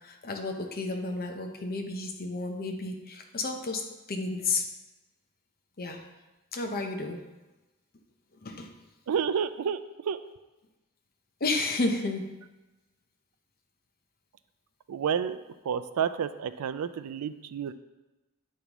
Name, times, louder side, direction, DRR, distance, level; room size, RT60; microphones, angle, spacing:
voice 1, 0.0-4.7 5.8-6.0 6.5-7.2 8.4-8.7 11.4-12.4, left 3 dB, 45° left, 4 dB, 0.8 m, -32 dB
voice 2, 9.1-9.8 10.1-10.2 14.9-15.4 15.6-17.7, right 7 dB, 80° right, 13 dB, 0.4 m, -30 dB
8.2 x 5.3 x 3.0 m, 1.1 s
head